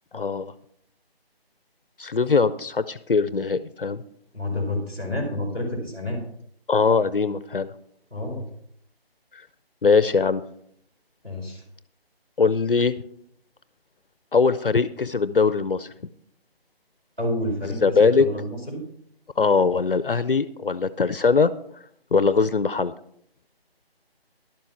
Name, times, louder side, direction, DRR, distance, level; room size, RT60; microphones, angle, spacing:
voice 1, 0.1-0.5 2.0-4.0 6.7-7.7 9.3-9.4 9.8-10.4 12.4-12.9 14.3-15.9 17.6-18.3 19.4-21.5 22.1-22.9, left 4 dB, 60° left, 14 dB, 0.6 m, -21 dB
voice 2, 4.3-6.2 8.1-8.5 11.2-11.6 17.2-18.8, left 1 dB, 10° right, -8 dB, 3.7 m, -29 dB
12.0 x 7.6 x 5.7 m, 0.67 s
figure-of-eight pair, 175°, 31 cm